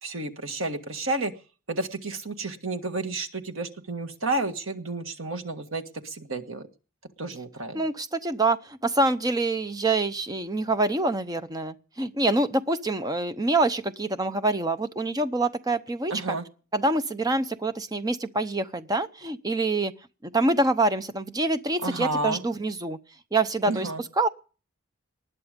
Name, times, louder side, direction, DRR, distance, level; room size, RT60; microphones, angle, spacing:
voice 1, 0.0-1.3 1.7-6.7 7.2-7.8 16.1-16.4 21.8-22.4 23.7-24.0, right 2 dB, 70° right, 1.7 m, -31 dB
voice 2, 7.7-16.4 16.7-19.9 20.2-23.0 23.3-23.9 24.2-24.3, right 2 dB, 15° right, 0.7 m, -26 dB
19.5 x 11.0 x 5.2 m
head